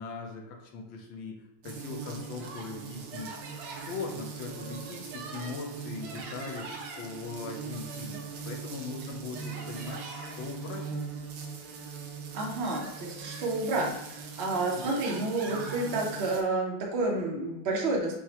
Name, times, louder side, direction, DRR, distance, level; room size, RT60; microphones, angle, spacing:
voice 1, 0.0-3.4 3.8-8.2 8.5-10.9 14.8-15.0, left 4 dB, 85° left, 2 dB, 1.4 m, -40 dB
sound 1, 1.6-16.4, right 5 dB, 90° right, 1.4 m, -40 dB
voice 2, 12.3-18.2, right 2 dB, 75° right, -2 dB, 0.5 m, -30 dB
5.8 x 2.1 x 2.8 m, 0.82 s
omnidirectional pair, 2.1 m